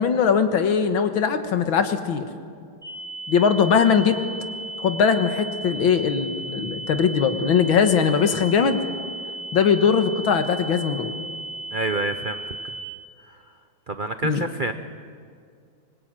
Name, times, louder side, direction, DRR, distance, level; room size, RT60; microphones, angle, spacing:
voice 1, 0.0-2.3 3.3-4.2 4.8-8.8 9.5-11.1 14.2-14.4, left 6 dB, 80° left, 8 dB, 2.2 m, -20 dB
sound 1, 2.8-12.8, right 2 dB, ahead, 5.0 m, -35 dB
voice 2, 11.7-12.7 13.2-13.4 13.9-14.7, right 2 dB, 60° right, 8 dB, 0.5 m, -28 dB
24.5 x 21.0 x 8.9 m, 2.2 s
omnidirectional pair, 2.2 m